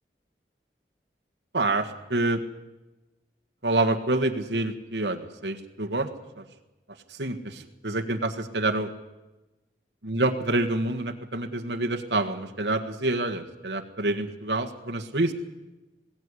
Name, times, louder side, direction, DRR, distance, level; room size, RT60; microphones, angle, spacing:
voice 1, 1.5-2.4 3.6-6.1 6.4-6.5 7.1-8.9 10.0-15.3, right 2 dB, 85° right, 4 dB, 1.7 m, -27 dB
21.0 x 16.5 x 9.9 m, 1.1 s
head